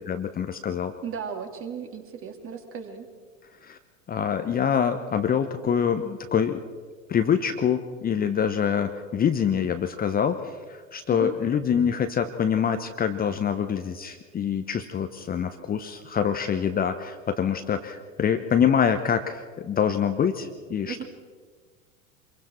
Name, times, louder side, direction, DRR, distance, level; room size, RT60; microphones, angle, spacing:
voice 1, 0.0-0.9 3.6-3.8 4.1-6.6 7.1-21.0, left 8 dB, 20° left, 8 dB, 1.0 m, -25 dB
voice 2, 1.0-3.1 11.1-11.3 20.9-21.0, right 7 dB, 30° right, 4 dB, 2.7 m, -35 dB
26.0 x 22.5 x 4.5 m, 1.5 s
figure-of-eight pair, 80°, 40 cm